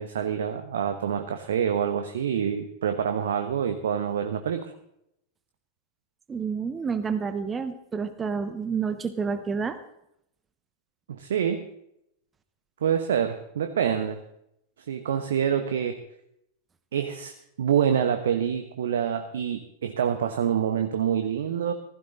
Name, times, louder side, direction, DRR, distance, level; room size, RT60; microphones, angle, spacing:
voice 1, 0.0-4.6 11.1-11.6 12.8-14.2 14.9-16.0 16.9-17.3 17.6-21.7, right 8 dB, 60° right, 7 dB, 1.1 m, -26 dB
voice 2, 6.3-9.8, right 5 dB, 20° right, 11 dB, 1.0 m, -29 dB
15.5 x 15.5 x 3.9 m, 0.77 s
figure-of-eight pair, 90°, 0 cm